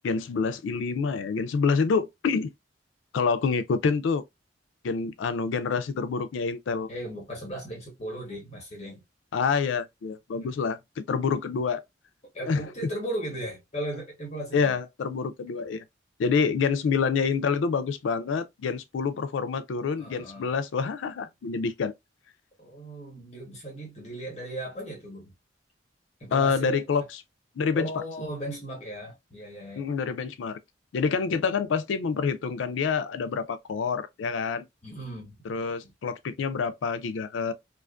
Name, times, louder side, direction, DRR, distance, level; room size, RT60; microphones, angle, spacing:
voice 1, 0.0-2.5 3.1-4.2 4.8-6.9 9.3-11.8 12.5-12.6 14.5-15.8 16.2-21.9 26.3-27.2 27.6-28.0 29.8-30.6 30.9-34.7 35.5-37.5, left 5 dB, 85° left, 0.4 m, -27 dB
voice 2, 6.9-9.0 10.4-10.5 12.3-14.7 20.0-20.5 22.6-25.3 26.2-26.8 27.7-29.9 34.8-35.4 35.8-35.9, right 1 dB, 35° left, 1.0 m, -37 dB
2.4 x 2.4 x 2.3 m
head